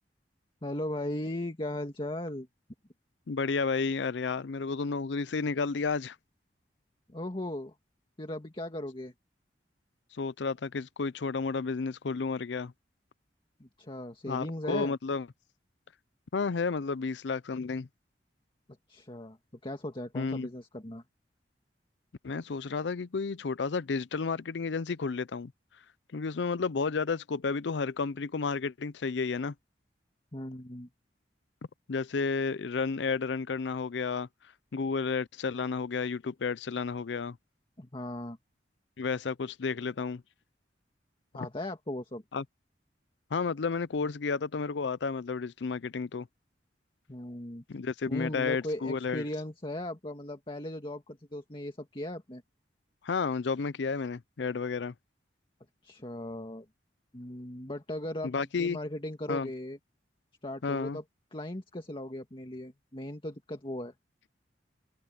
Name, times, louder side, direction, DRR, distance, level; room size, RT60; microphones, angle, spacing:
voice 1, 0.6-2.5 7.1-7.7 8.2-9.1 13.6-14.9 18.9-19.4 19.6-21.0 30.3-30.9 37.8-38.4 41.3-42.2 47.1-47.6 48.1-52.4 55.8-56.7 57.1-59.8 60.4-61.0 61.3-63.9, left 1 dB, 30° left, 1.9 m, -37 dB
voice 2, 3.3-6.2 10.2-12.7 14.3-15.3 16.3-17.9 20.1-20.5 22.2-25.5 26.1-29.5 31.9-34.3 34.7-37.4 39.0-40.2 42.3-42.4 43.3-46.3 47.7-49.2 53.0-54.9 58.2-58.8 59.3-59.5 60.6-61.0, left 4 dB, 75° left, 0.5 m, -31 dB
open air
head